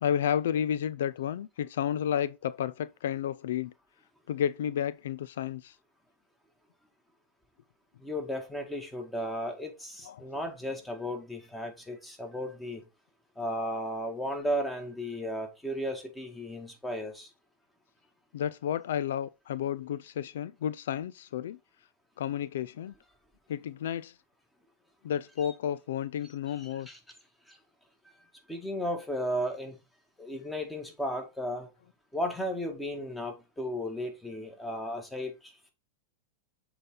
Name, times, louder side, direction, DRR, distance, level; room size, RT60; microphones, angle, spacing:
voice 1, 0.0-3.7 4.3-5.7 10.0-10.2 10.7-10.8 18.3-21.6 22.2-22.9 23.5-24.1 25.0-26.9, left 9 dB, 80° left, 0.3 m, -31 dB
voice 2, 8.0-12.8 13.4-17.3 25.4-25.5 26.5-27.0 27.5-27.6 28.5-29.8 30.2-31.7 32.1-35.7, equal, 5° left, 2.0 m, -35 dB
7.7 x 3.9 x 3.8 m
hypercardioid pair, 125°, 0 cm